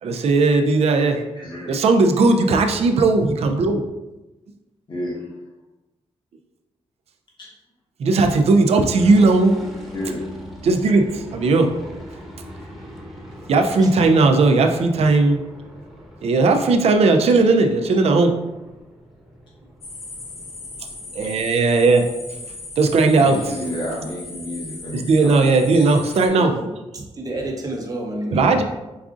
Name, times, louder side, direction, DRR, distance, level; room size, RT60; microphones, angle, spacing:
voice 1, 0.0-1.2 1.7-3.8 8.0-9.6 10.6-11.8 13.5-15.4 16.2-18.4 21.1-22.1 22.8-23.4 24.9-26.5 28.3-28.6, right 3 dB, 65° right, 5 dB, 0.4 m, -17 dB
voice 2, 1.3-1.8 4.9-5.4 7.4-7.5 9.9-10.2 23.1-25.8, left 1 dB, 45° left, -5 dB, 1.2 m, -31 dB
sound 1, 8.9-23.7, equal, ahead, 1.0 m, -42 dB
sound 2, 19.8-26.3, left 3 dB, 75° left, 0.8 m, -38 dB
voice 3, 26.9-28.6, right 1 dB, 35° right, 0 dB, 0.7 m, -30 dB
4.7 x 2.4 x 2.4 m, 1.1 s
cardioid pair, 85°, 11 cm